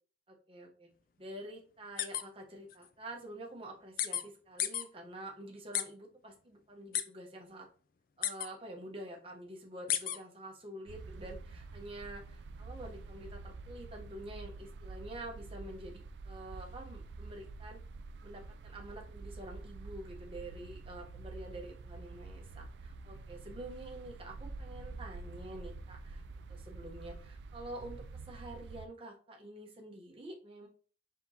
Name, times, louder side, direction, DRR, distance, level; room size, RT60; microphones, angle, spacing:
voice 1, 0.3-0.9 1.2-7.7 8.2-17.8 18.2-26.2 26.5-30.7, right 1 dB, 30° right, 0 dB, 0.9 m, -47 dB
sound 1, 2.0-2.2 2.7-2.8 4.0-4.2 4.6-4.8 5.7-5.8 6.9-7.0 8.2-8.5 9.9-10.2, left 11 dB, 50° left, 0.3 m, -31 dB
sound 2, 10.9-28.9, right 3 dB, 75° right, 0.3 m, -47 dB
4.4 x 3.6 x 2.7 m, 0.41 s
head